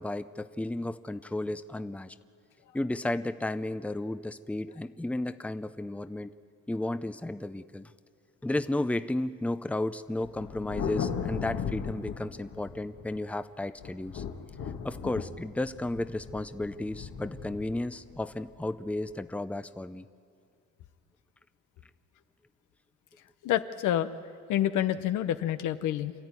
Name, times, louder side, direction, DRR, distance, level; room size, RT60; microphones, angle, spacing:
voice 1, 0.0-2.1 2.7-6.3 6.7-7.9 8.4-14.2 14.8-20.0, left 1 dB, 5° left, 11 dB, 0.7 m, -33 dB
Thunder, 10.2-13.3 13.8-19.1, left 7 dB, 65° left, 1.8 m, -37 dB
voice 2, 23.4-24.1 24.5-26.1, left 11 dB, 85° left, 10 dB, 1.0 m, -28 dB
27.5 x 13.5 x 9.7 m, 2.3 s
cardioid pair, 90°, 30 cm